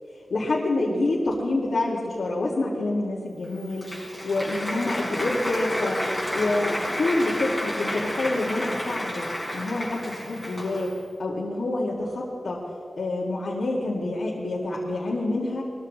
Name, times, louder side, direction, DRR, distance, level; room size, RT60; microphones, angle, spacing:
voice 1, 0.3-3.9 4.2-6.0 6.3-9.3 9.5-10.9 11.2-12.6 13.0-15.7, left 2 dB, 85° left, -6 dB, 2.3 m, -27 dB
Applause, 3.4-11.0, left 1 dB, 10° left, 4.3 m, -31 dB
21.5 x 14.0 x 3.2 m, 2.5 s
wide cardioid pair, 70°, 0 cm